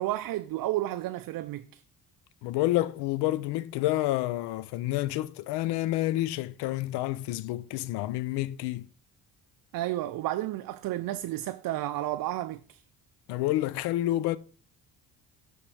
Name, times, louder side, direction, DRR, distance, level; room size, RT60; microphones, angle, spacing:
voice 1, 0.0-1.8 9.7-12.8, right 15 dB, 60° right, 0.5 m, -32 dB
voice 2, 2.4-8.9 13.3-14.4, left 15 dB, 90° left, 0.5 m, -29 dB
12.0 x 4.4 x 3.2 m
cardioid pair, 100°, 39 cm